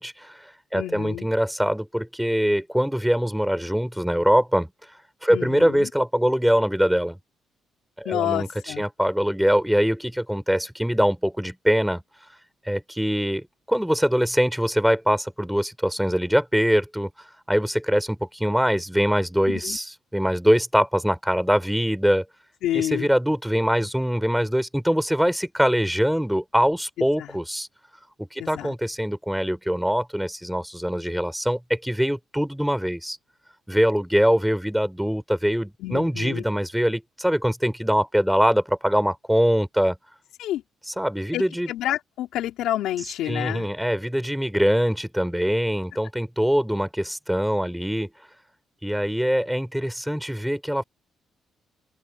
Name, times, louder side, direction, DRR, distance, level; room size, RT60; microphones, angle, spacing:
voice 1, 0.0-4.7 5.2-7.2 8.0-12.0 12.6-17.1 17.5-22.2 22.7-27.7 28.2-33.2 33.7-40.0 41.0-41.7 43.3-48.1 48.8-50.8, equal, ahead, 6.2 m, -23 dB
voice 2, 0.7-1.3 5.3-5.9 8.0-8.8 19.5-19.8 22.6-23.1 27.0-27.3 28.4-28.7 35.8-36.4 40.4-40.6 41.3-43.7, left 13 dB, 85° left, 4.2 m, -29 dB
open air
cardioid pair, 90°, 0 cm